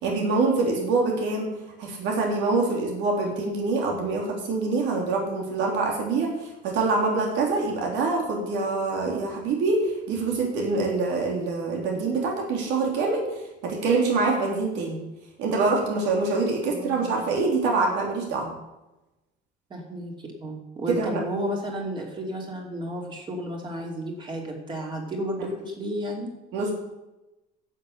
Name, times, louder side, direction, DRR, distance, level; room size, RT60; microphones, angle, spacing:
voice 1, 0.0-1.5 1.8-13.3 13.6-15.0 15.4-18.5 20.9-21.2 26.5-26.8, right 3 dB, 75° right, 0 dB, 3.6 m, -25 dB
voice 2, 16.6-17.4 19.7-26.3, equal, 25° right, 0 dB, 2.8 m, -33 dB
12.0 x 7.4 x 8.3 m, 0.98 s
cardioid pair, 175°, 18 cm